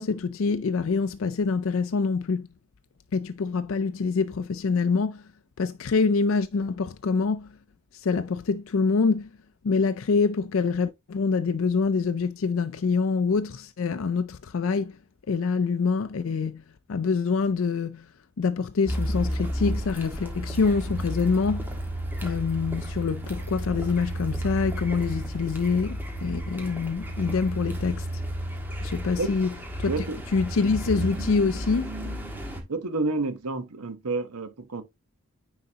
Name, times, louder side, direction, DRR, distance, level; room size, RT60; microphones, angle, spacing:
voice 1, 0.0-2.5 3.1-5.3 5.6-7.5 7.9-9.3 9.6-15.0 15.3-16.6 16.9-18.1 18.4-21.7 22.2-28.1 28.8-29.5 29.8-30.0 30.3-32.1, left 4 dB, 60° left, 0.4 m, -25 dB
Car, 18.9-32.6, equal, 10° right, 1.6 m, -32 dB
voice 2, 29.8-30.2 32.7-34.8, right 3 dB, 90° right, 1.1 m, -29 dB
9.5 x 3.9 x 2.8 m
head